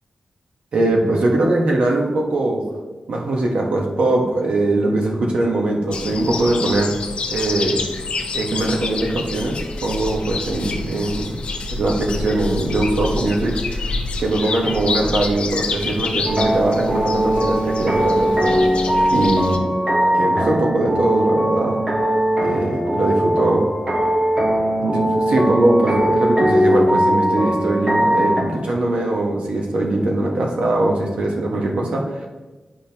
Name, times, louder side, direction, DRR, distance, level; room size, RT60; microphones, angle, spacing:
voice 1, 0.7-2.6 3.1-6.9 7.3-7.8 8.3-11.4 11.8-13.9 14.2-18.6 19.1-19.7 20.1-21.8 22.4-23.6 24.8-32.3, right 2 dB, 70° right, 0 dB, 1.2 m, -21 dB
sound 1, 5.9-19.6, left 3 dB, 65° left, 0.7 m, -28 dB
sound 2, 16.2-28.4, equal, 35° right, 1.5 m, -19 dB
10.0 x 5.1 x 2.9 m, 1.2 s
wide cardioid pair, 130°, 2 cm